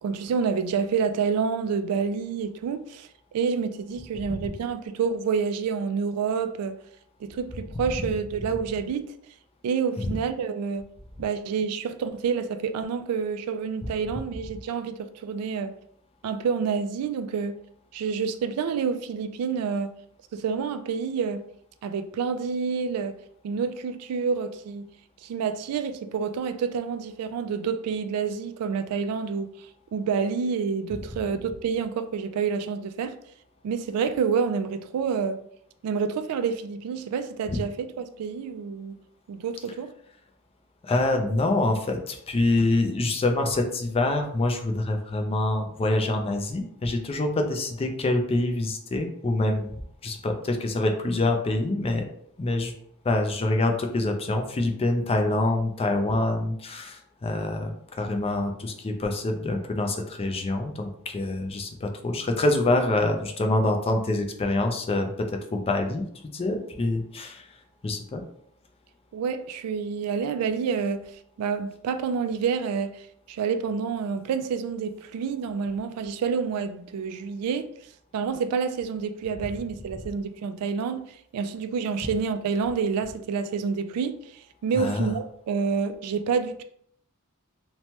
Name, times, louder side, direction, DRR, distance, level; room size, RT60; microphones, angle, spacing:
voice 1, 0.0-3.1 3.3-6.8 7.2-9.1 9.6-10.8 11.2-15.7 16.2-17.6 17.9-19.9 20.3-21.4 21.8-23.1 23.4-24.9 25.2-29.5 29.9-33.2 33.6-35.4 35.8-39.0 39.3-39.9 69.1-71.1 71.4-77.7 78.1-81.0 81.3-86.6, right 6 dB, 85° right, 0.3 m, -28 dB
voice 2, 40.8-49.7 50.0-52.0 52.4-52.7 53.0-67.5 67.8-68.2 84.8-85.1, left 2 dB, 25° left, 0.4 m, -26 dB
3.0 x 2.1 x 2.8 m
head